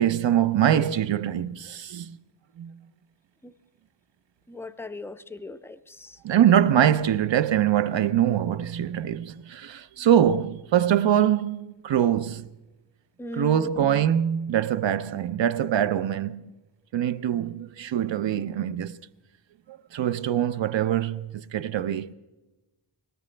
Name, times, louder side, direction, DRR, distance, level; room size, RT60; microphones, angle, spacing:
voice 1, 0.0-2.2 2.6-2.8 6.2-12.5 13.4-16.5 16.9-19.0 19.7-22.1, right 10 dB, 65° right, 0.6 m, -23 dB
voice 2, 4.5-6.2 10.2-10.4 13.2-14.1, left 2 dB, 5° left, 0.4 m, -39 dB
19.5 x 17.5 x 3.3 m
wide cardioid pair, 100°, 48 cm